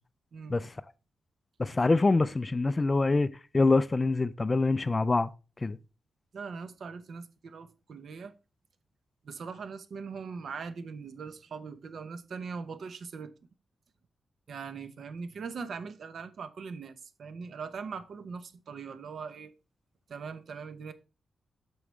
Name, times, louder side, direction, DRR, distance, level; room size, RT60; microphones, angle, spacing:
voice 1, 1.6-3.3 3.5-5.3 5.6-5.8, left 3 dB, 20° left, 0.3 m, -25 dB
voice 2, 6.3-8.3 9.2-13.3 14.5-19.5 20.1-20.9, right 5 dB, 55° right, 0.8 m, -41 dB
8.6 x 6.2 x 3.2 m
wide cardioid pair, 165°, 0 cm